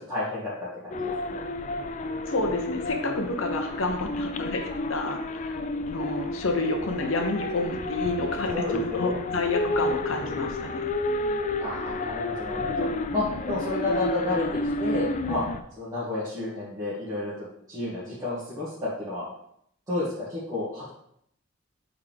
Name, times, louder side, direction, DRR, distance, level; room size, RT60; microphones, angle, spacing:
voice 1, 0.0-1.4 8.5-9.2 11.6-15.4 15.8-19.2 19.9-20.9, left 2 dB, 20° right, -12 dB, 1.9 m, -31 dB
sound 1, 0.9-15.6, left 2 dB, 40° left, 0.4 m, -31 dB
voice 2, 2.3-4.6 4.9-5.6 5.9-10.8, left 2 dB, 85° left, 3 dB, 0.8 m, -29 dB
8.2 x 3.7 x 3.4 m, 0.71 s
head